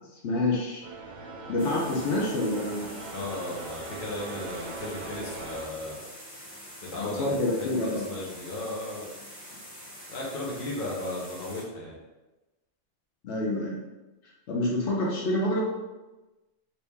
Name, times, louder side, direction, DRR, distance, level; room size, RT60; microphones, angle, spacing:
voice 1, 0.2-0.8 1.5-2.9 7.0-8.1 13.2-13.8 14.5-15.6, left 1 dB, 80° left, -3 dB, 1.0 m, -27 dB
sound 1, 0.8-5.7, right 3 dB, 70° right, 0.8 m, -40 dB
sound 2, 1.6-11.6, equal, ahead, 1.1 m, -45 dB
voice 2, 3.1-6.1 6.8-9.1 10.1-12.0, left 2 dB, 50° left, -4 dB, 1.0 m, -36 dB
2.9 x 2.8 x 3.4 m, 1.1 s
omnidirectional pair, 1.2 m